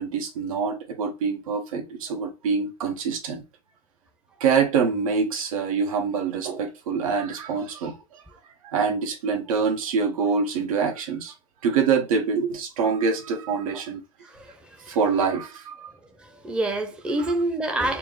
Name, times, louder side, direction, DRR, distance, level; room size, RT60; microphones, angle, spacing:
voice 1, 0.0-3.4 4.4-8.2 8.6-11.3 11.6-14.0 14.9-15.9 17.2-17.3, right 5 dB, 75° right, 1.3 m, -25 dB
voice 2, 14.2-15.0 15.3-15.4 16.2-18.0, right 2 dB, 5° right, 0.6 m, -28 dB
4.4 x 2.0 x 3.8 m
hypercardioid pair, 125°, 18 cm